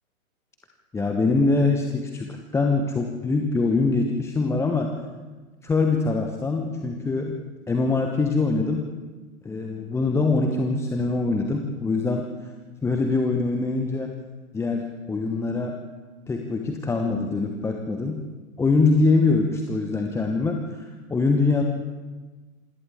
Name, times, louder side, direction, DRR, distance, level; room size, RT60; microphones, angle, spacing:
voice 1, 0.9-4.9 5.6-7.4 7.7-8.8 9.4-12.2 12.8-14.1 14.5-15.8 16.3-18.2 18.6-21.6, left 3 dB, 5° left, 3 dB, 1.0 m, -23 dB
27.5 x 25.5 x 3.7 m, 1.3 s
figure-of-eight pair, 110°, 43 cm